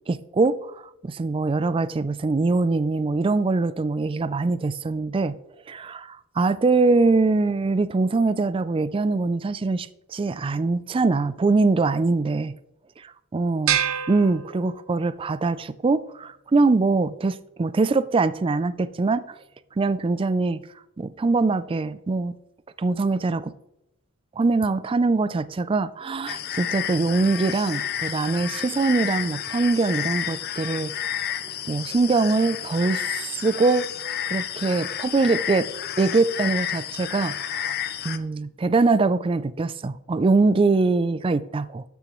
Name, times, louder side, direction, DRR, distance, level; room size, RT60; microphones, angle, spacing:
voice 1, 0.1-0.7 1.0-5.4 5.7-12.5 13.0-13.8 14.1-19.2 19.8-20.6 21.0-22.3 22.8-23.5 24.4-30.9 31.7-33.1 33.3-33.8 34.3-35.7 36.0-37.7 38.0-41.8, right 3 dB, 25° right, 0.3 m, -23 dB
sound 1, 13.7-15.2, right 9 dB, 65° right, 1.0 m, -27 dB
sound 2, 26.3-38.2, left 10 dB, 45° left, 0.5 m, -31 dB
12.5 x 6.7 x 3.1 m
head